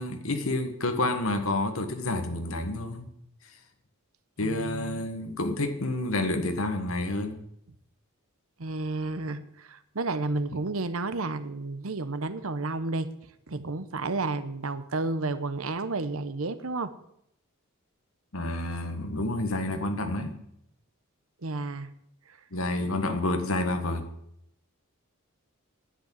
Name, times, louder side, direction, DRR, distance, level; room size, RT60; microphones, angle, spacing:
voice 1, 0.0-3.1 4.4-7.4 18.3-20.4 22.5-24.0, left 2 dB, 70° left, 6 dB, 1.6 m, -29 dB
voice 2, 4.4-5.1 8.6-13.1 13.5-16.9 21.4-21.9, right 3 dB, 70° right, 13 dB, 0.9 m, -31 dB
10.0 x 8.5 x 7.6 m, 0.74 s
head